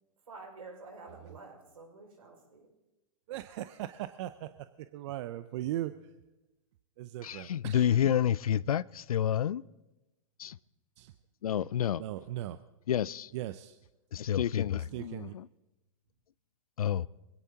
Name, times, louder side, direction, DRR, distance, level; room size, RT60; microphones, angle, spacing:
voice 1, 0.3-2.7 14.6-15.0, right 3 dB, 75° right, 5.7 m, -50 dB
voice 2, 3.3-4.5 4.9-5.9 7.0-8.2 11.0-11.1 12.0-12.6 13.3-13.8 14.7-15.3, right 14 dB, 50° right, 0.6 m, -38 dB
voice 3, 7.2-9.6 10.4-10.5 11.4-12.0 12.9-13.3 14.1-15.4 16.8-17.1, left 10 dB, 80° left, 0.4 m, -29 dB
24.0 x 17.0 x 2.9 m
hypercardioid pair, 115°, 18 cm